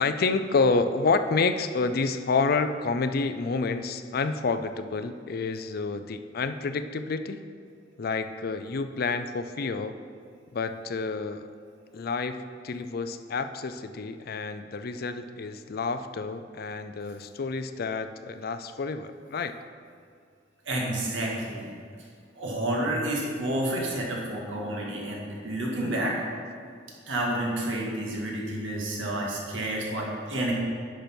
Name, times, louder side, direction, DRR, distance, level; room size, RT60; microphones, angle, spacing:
voice 1, 0.0-7.4 8.0-9.9 10.5-11.5 11.9-19.5, left 4 dB, 55° left, 10 dB, 0.4 m, -29 dB
voice 2, 20.7-21.7 22.4-26.2 27.1-30.5, right 1 dB, 85° right, -3 dB, 1.9 m, -30 dB
10.5 x 6.1 x 4.4 m, 2.2 s
head